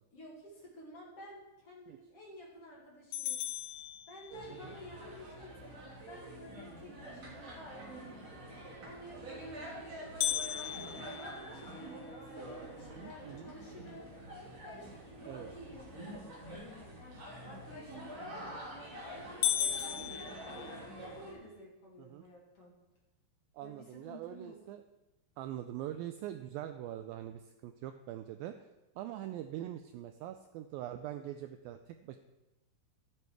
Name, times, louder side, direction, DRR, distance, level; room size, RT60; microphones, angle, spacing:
voice 1, 0.1-3.4 4.1-11.2 11.5-14.1 14.6-19.2 19.5-22.7 23.6-24.6, left 1 dB, 40° left, -4 dB, 2.8 m, -52 dB
sound 1, 3.1-4.7 10.2-12.4 12.9-13.0 13.5-13.6 14.2-14.6 18.2-18.6 19.0-19.1 19.4-21.2, left 10 dB, 75° left, 1.9 m, -36 dB
sound 2, 4.3-21.3, right 1 dB, 40° right, 3.8 m, -47 dB
voice 2, 13.0-13.5 15.3-15.5 22.0-22.2 23.5-24.8 25.4-28.7 29.0-32.2, right 12 dB, 90° right, 8 dB, 2.0 m, -43 dB
13.5 x 9.0 x 4.7 m, 1.0 s
omnidirectional pair, 4.7 m